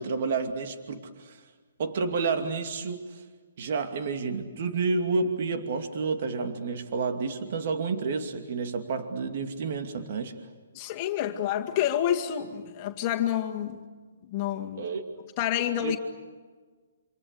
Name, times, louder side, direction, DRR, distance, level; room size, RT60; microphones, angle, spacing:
voice 1, 0.0-1.4 1.8-3.2 3.6-10.4 14.8-15.0 15.8-16.0, right 4 dB, 55° right, 6 dB, 2.5 m, -30 dB
voice 2, 10.7-13.8 14.3-14.8 15.4-16.0, left 11 dB, 35° left, 2 dB, 2.1 m, -28 dB
28.0 x 27.0 x 6.8 m, 1.4 s
hypercardioid pair, 140°, 0 cm